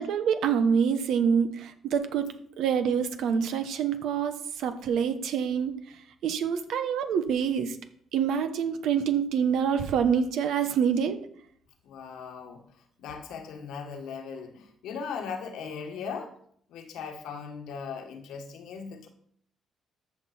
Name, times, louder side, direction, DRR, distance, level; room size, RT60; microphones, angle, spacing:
voice 1, 0.0-2.3 2.6-5.7 6.2-7.8 8.1-11.2, right 7 dB, 80° right, 8 dB, 1.2 m, -26 dB
voice 2, 11.8-12.6 13.0-16.3 16.7-19.1, left 6 dB, 85° left, 5 dB, 1.6 m, -38 dB
14.0 x 6.1 x 4.4 m, 0.65 s
cardioid pair, 90°, 0 cm